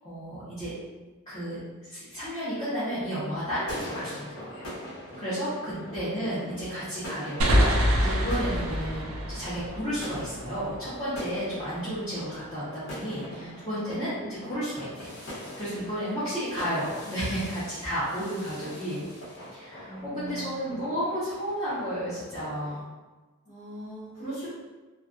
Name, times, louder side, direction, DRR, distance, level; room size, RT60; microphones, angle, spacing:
voice 1, 0.0-0.7 1.3-4.7 5.2-19.0 19.5-22.8, equal, 20° left, -13 dB, 0.7 m, -32 dB
sound 1, 3.4-22.8, left 1 dB, 65° left, 0.9 m, -43 dB
voice 2, 5.7-6.1 13.1-13.7 15.7-15.8 19.9-20.8 23.4-24.5, right 2 dB, 90° left, -9 dB, 1.3 m, -41 dB
sound 2, 7.4-10.9, equal, 65° right, 0.5 m, -26 dB
2.3 x 2.3 x 2.4 m, 1.2 s
head